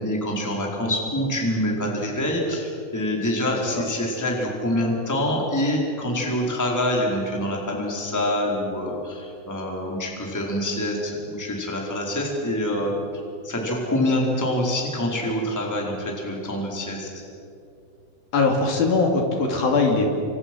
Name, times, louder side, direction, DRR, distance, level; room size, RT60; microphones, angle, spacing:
voice 1, 0.0-12.9 13.4-17.1, left 1 dB, 5° left, -1 dB, 3.8 m, -26 dB
voice 2, 18.3-20.1, left 3 dB, 50° left, 2 dB, 4.1 m, -20 dB
29.5 x 26.5 x 6.3 m, 2.6 s
omnidirectional pair, 5.8 m